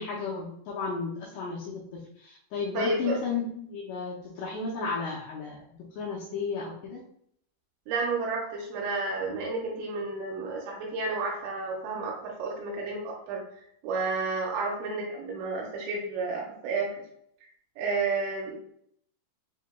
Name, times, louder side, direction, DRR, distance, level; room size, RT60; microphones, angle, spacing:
voice 1, 0.0-1.8 2.2-5.6 6.0-7.0, left 4 dB, 85° left, -6 dB, 2.5 m, -33 dB
voice 2, 2.7-3.1 7.9-13.4 13.8-17.0 17.8-18.6, right 3 dB, 80° right, -1 dB, 3.0 m, -31 dB
7.1 x 2.8 x 2.2 m, 0.70 s
omnidirectional pair, 5.7 m